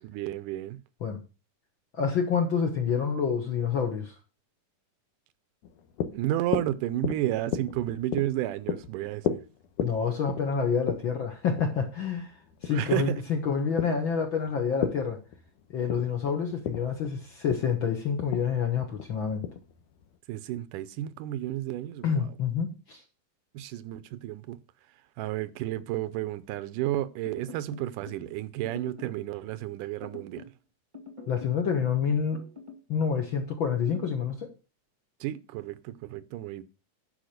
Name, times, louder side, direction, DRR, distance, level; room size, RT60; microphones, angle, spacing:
voice 1, 0.0-0.8 6.1-9.4 12.7-13.2 20.3-22.3 23.5-24.6 25.2-30.5 35.2-36.6, right 14 dB, 85° right, 2.2 m, -32 dB
voice 2, 2.0-4.1 9.8-12.3 12.6-15.2 15.7-19.4 22.0-23.0 31.3-32.4 32.9-34.5, left 6 dB, 55° left, 1.5 m, -28 dB
sound 1, 5.6-20.2, left 8 dB, 80° left, 2.4 m, -36 dB
sound 2, 27.2-28.2 28.6-29.2 30.0-30.6 30.9-32.0 32.3-32.9 33.7-34.2, left 4 dB, 25° right, 0.6 m, -46 dB
10.5 x 5.2 x 6.5 m
omnidirectional pair, 3.7 m